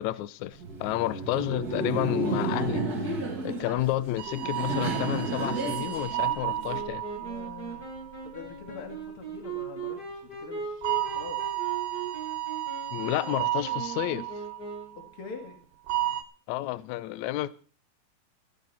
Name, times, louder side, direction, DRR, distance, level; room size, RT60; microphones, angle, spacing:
voice 1, 0.0-7.0 12.9-14.3 16.5-17.5, left 15 dB, 75° left, 1.8 m, -31 dB
Laughter, 0.5-6.8, right 2 dB, 30° right, 2.4 m, -32 dB
sound 1, 4.2-8.6 10.8-15.1 15.9-16.2, right 14 dB, 80° right, 2.7 m, -32 dB
Wind instrument woodwind instrument, 6.7-15.1, right 4 dB, 25° left, 7.7 m, -39 dB
voice 2, 7.1-7.8 8.2-11.4 14.9-15.6, left 4 dB, 40° left, 2.8 m, -44 dB
16.0 x 13.5 x 4.3 m
omnidirectional pair, 4.2 m